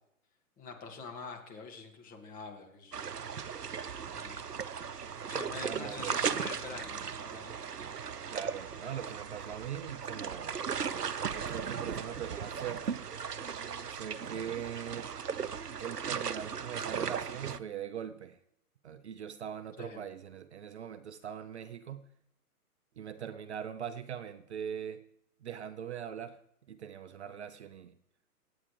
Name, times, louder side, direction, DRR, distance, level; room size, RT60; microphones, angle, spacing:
voice 1, 0.6-3.1 4.1-4.5 5.3-7.5 19.8-20.0, left 4 dB, 20° left, 2.1 m, -45 dB
sound 1, 2.9-17.6, right 7 dB, 85° right, 0.8 m, -37 dB
voice 2, 5.6-6.1 8.3-13.0 13.9-15.1 15.8-18.4 18.8-22.1 23.0-25.0 25.4-26.4 26.7-27.9, right 9 dB, 45° right, 0.8 m, -41 dB
25.5 x 8.9 x 3.3 m
figure-of-eight pair, 125°, 46 cm